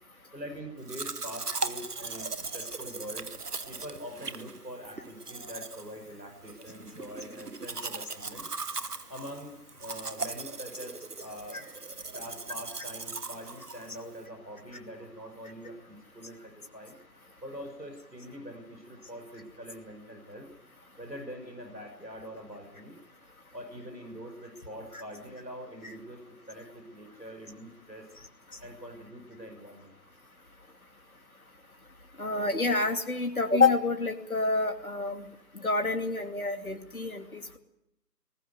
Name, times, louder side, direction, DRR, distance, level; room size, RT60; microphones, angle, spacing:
voice 1, 0.3-3.3 3.7-8.5 9.1-11.6 12.1-17.0 17.4-20.5 21.0-23.0 23.5-28.1 28.6-29.9, equal, 85° right, 4 dB, 6.1 m, -44 dB
Domestic sounds home sounds, 0.9-14.3, right 3 dB, 65° right, 1.2 m, -39 dB
voice 2, 32.2-35.2 35.6-37.6, left 3 dB, 55° left, 5 dB, 2.7 m, -28 dB
20.0 x 19.0 x 9.5 m, 0.81 s
figure-of-eight pair, 165°, 50 cm